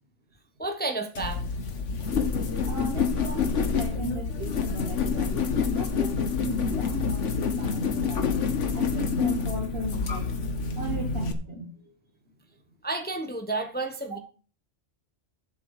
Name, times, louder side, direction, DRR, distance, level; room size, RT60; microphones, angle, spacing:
voice 1, 0.6-1.4 12.8-14.2, right 2 dB, 10° left, 1.0 m, -31 dB
sound 1, 1.2-11.3, left 5 dB, 85° left, 1.6 m, -27 dB
voice 2, 2.6-8.3 8.7-10.3 10.8-11.9, right 1 dB, 55° right, 1.7 m, -36 dB
11.5 x 7.5 x 4.8 m
omnidirectional pair, 1.2 m